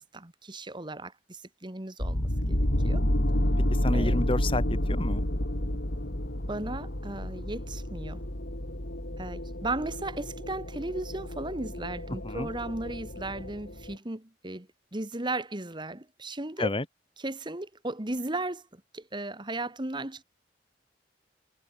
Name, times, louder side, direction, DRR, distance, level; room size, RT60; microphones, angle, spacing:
voice 1, 0.0-3.0 3.9-4.2 6.5-8.2 9.2-16.8 17.2-20.2, right 2 dB, 25° right, 1.8 m, -36 dB
sound 1, 2.0-13.9, left 1 dB, 75° left, 3.7 m, -30 dB
voice 2, 3.7-5.2 12.2-12.5 16.6-16.8, left 2 dB, 30° left, 1.7 m, -30 dB
head